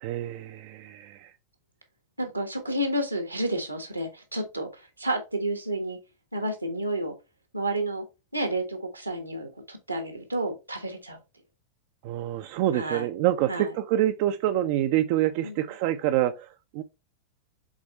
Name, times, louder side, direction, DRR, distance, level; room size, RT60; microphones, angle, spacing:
voice 1, 0.0-1.3 12.0-16.8, right 13 dB, 45° right, 0.6 m, -26 dB
voice 2, 2.2-6.0 6.3-7.2 7.5-8.0 8.3-11.2 12.7-13.1 13.5-13.7 15.4-15.7, right 1 dB, 85° right, 1.6 m, -30 dB
7.3 x 4.1 x 3.3 m
figure-of-eight pair, 90°, 0 cm